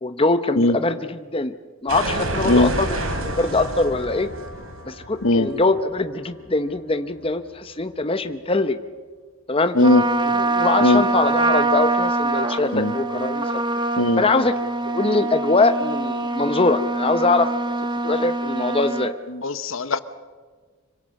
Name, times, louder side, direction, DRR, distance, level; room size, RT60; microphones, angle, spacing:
voice 1, 0.0-1.5 1.8-4.3 4.9-8.8 9.5-9.8 10.4-13.5 14.2-14.5 14.9-17.5 18.0-19.1, left 3 dB, 25° left, 10 dB, 0.8 m, -22 dB
sound 1, 1.9-6.7, right 1 dB, 80° right, 3.9 m, -29 dB
Trumpet, 9.8-19.1, right 2 dB, 20° right, 1.3 m, -24 dB
voice 2, 19.3-20.0, left 2 dB, 75° left, 12 dB, 1.2 m, -18 dB
26.0 x 24.0 x 6.5 m, 1.5 s
head